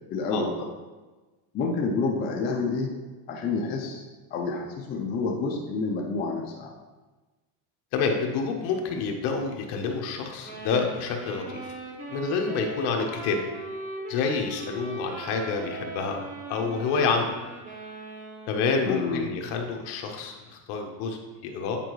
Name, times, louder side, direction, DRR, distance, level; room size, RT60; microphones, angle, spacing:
voice 1, 0.1-0.7 1.5-2.9 3.3-4.0 4.3-6.7 18.8-19.3, left 4 dB, 25° left, -1 dB, 0.3 m, -28 dB
voice 2, 7.9-11.7 12.1-13.4 14.1-16.2 16.5-17.3 18.5-21.8, left 5 dB, 55° left, 3 dB, 1.1 m, -28 dB
sound 1, 10.4-18.8, right 2 dB, 15° right, 0.9 m, -39 dB
8.8 x 4.6 x 3.1 m, 1.2 s
cardioid pair, 150°, 49 cm